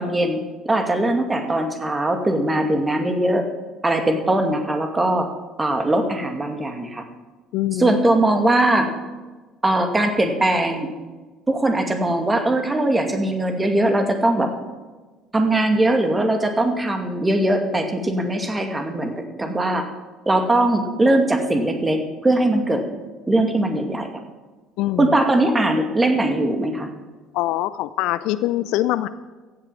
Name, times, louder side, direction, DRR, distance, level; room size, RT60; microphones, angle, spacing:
voice 1, 0.0-3.4 3.8-5.3 5.6-7.0 7.8-8.9 9.6-10.9 11.5-14.5 15.3-19.8 20.3-22.8 23.3-24.1 25.0-26.9, right 1 dB, 20° right, 5 dB, 2.3 m, -20 dB
voice 2, 7.5-8.0 24.8-25.1 27.3-29.1, left 15 dB, 60° left, 15 dB, 0.5 m, -23 dB
15.0 x 8.9 x 7.1 m, 1.3 s
figure-of-eight pair, 55°, 0 cm